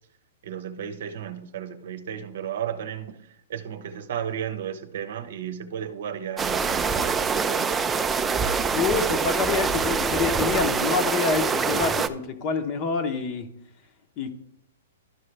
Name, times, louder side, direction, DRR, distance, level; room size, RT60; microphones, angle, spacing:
voice 1, 0.4-7.8, right 9 dB, 65° right, 10 dB, 0.8 m, -34 dB
sound 1, 6.4-12.1, right 5 dB, 15° right, 0.4 m, -25 dB
voice 2, 8.7-13.5 14.2-14.3, left 5 dB, 35° left, 7 dB, 1.0 m, -27 dB
12.0 x 4.9 x 3.4 m, 0.78 s
hypercardioid pair, 140°, 0 cm